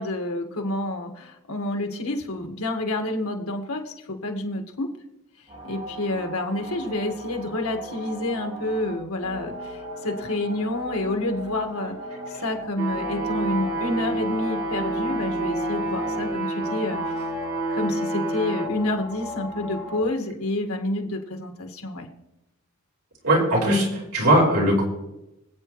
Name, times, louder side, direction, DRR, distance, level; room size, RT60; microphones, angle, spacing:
voice 1, 0.0-4.9 5.6-12.0 12.3-17.1 17.7-22.1, left 1 dB, 85° left, 4 dB, 1.7 m, -29 dB
sound 1, 5.5-20.0, equal, 25° right, 2.2 m, -37 dB
sound 2, 12.8-18.7, right 2 dB, 55° right, 2.0 m, -28 dB
voice 2, 23.2-24.8, right 1 dB, 80° right, -3 dB, 4.7 m, -19 dB
25.5 x 8.6 x 3.1 m, 0.92 s
head